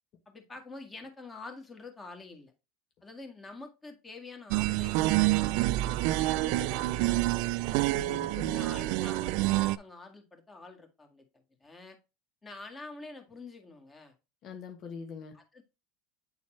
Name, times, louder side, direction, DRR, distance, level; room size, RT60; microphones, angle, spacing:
voice 1, 0.3-2.5 3.0-7.4 8.5-12.0 12.4-14.1 15.3-15.6, left 3 dB, 15° left, 1.8 m, -47 dB
sound 1, 4.5-9.8, right 17 dB, 65° right, 0.4 m, -27 dB
voice 2, 7.8-8.8 14.4-15.4, left 6 dB, 45° left, 1.2 m, -43 dB
8.9 x 4.1 x 3.2 m
supercardioid pair, 120°, 0 cm